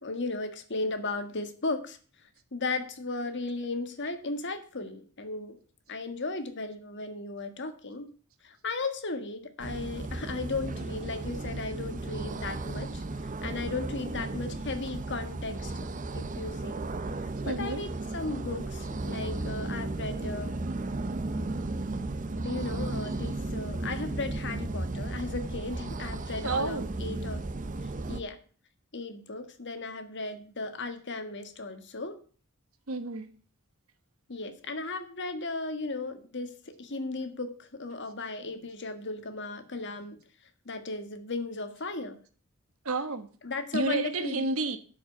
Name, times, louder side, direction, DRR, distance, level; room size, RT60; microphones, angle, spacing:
voice 1, 0.0-2.0 2.5-5.6 5.9-8.1 8.4-13.0 13.4-15.7 16.1-16.8 17.4-20.5 22.4-27.4 28.1-28.4 28.9-32.2 34.3-40.2 40.6-42.2 43.4-44.5, left 3 dB, 55° left, 1.6 m, -35 dB
sound 1, 9.6-28.2, right 2 dB, 35° right, 0.7 m, -35 dB
voice 2, 17.4-17.8 26.4-26.9 32.9-33.3 42.8-43.3 43.7-44.8, right 3 dB, 70° right, 1.3 m, -30 dB
11.0 x 5.2 x 7.8 m
head